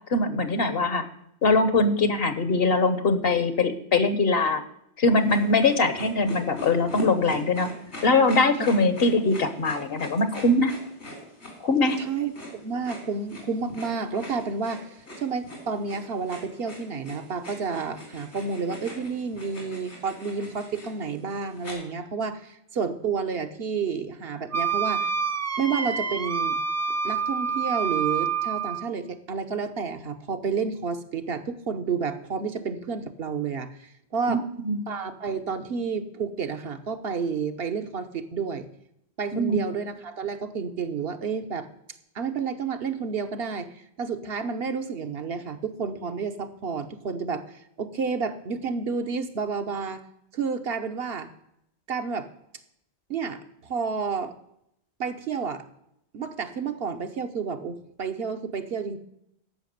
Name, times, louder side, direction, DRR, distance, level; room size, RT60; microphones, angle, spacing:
voice 1, 0.1-1.1 1.4-4.6 5.0-7.7 8.0-10.7 11.6-12.0 34.3-34.8 39.3-39.6, left 3 dB, 65° left, 11 dB, 1.2 m, -22 dB
sound 1, 5.2-21.7, left 1 dB, 90° left, 4.0 m, -41 dB
voice 2, 12.0-14.9 15.2-25.1 25.6-26.6 27.0-34.4 34.9-38.7 39.2-41.7 42.1-50.0 50.3-51.3 51.9-52.3 53.1-54.3 55.0-55.6 56.1-59.0, right 5 dB, 65° right, 7 dB, 1.1 m, -30 dB
Wind instrument woodwind instrument, 24.5-28.9, right 6 dB, 20° right, 0.5 m, -27 dB
13.5 x 5.7 x 6.6 m, 0.78 s
omnidirectional pair, 1.1 m